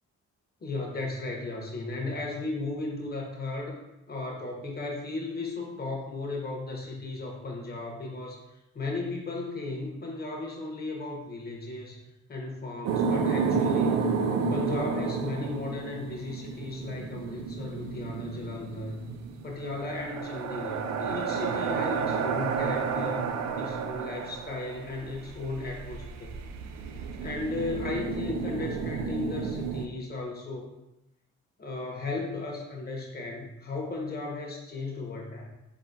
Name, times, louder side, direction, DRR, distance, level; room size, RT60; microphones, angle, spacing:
voice 1, 0.6-3.8 4.1-12.0 12.3-14.1 14.5-19.0 19.4-23.2 23.6-26.4 26.8-30.7 31.6-35.5, left 3 dB, 30° left, -1 dB, 1.1 m, -35 dB
sound 1, 12.8-29.9, right 5 dB, 65° right, 0.5 m, -31 dB
4.0 x 3.8 x 2.7 m, 0.92 s
cardioid pair, 90°, 30 cm